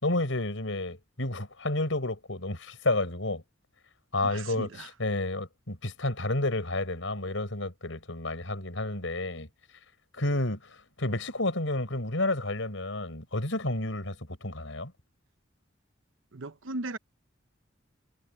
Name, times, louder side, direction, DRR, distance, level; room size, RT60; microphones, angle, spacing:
voice 1, 0.0-3.4 4.1-9.5 10.2-14.2 14.4-14.9, left 2 dB, 75° left, 4.7 m, -30 dB
voice 2, 4.2-4.9 16.3-17.0, right 2 dB, 80° right, 0.9 m, -37 dB
head